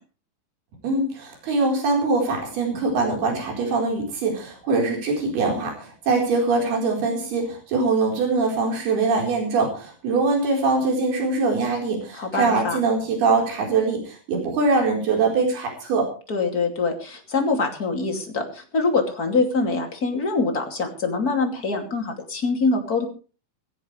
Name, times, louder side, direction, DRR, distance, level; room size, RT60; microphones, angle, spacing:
voice 1, 0.8-16.1, right 3 dB, 90° right, 1 dB, 6.4 m, -23 dB
voice 2, 12.1-12.8 16.3-23.1, left 3 dB, 25° left, 4 dB, 2.6 m, -24 dB
18.0 x 16.0 x 3.3 m, 0.36 s
omnidirectional pair, 4.3 m